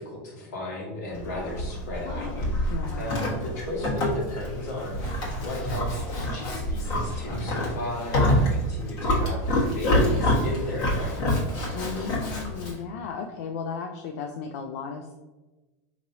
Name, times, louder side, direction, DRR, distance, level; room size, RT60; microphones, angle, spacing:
voice 1, 0.0-9.4 9.7-11.3, left 2 dB, 85° left, -3 dB, 1.5 m, -35 dB
Livestock farm animals working animals, 1.1-12.8, left 1 dB, 50° left, 1.4 m, -27 dB
voice 2, 2.7-3.2 11.7-15.1, left 6 dB, 65° left, 4 dB, 0.4 m, -35 dB
4.0 x 2.9 x 2.7 m, 1.1 s
supercardioid pair, 130°, 8 cm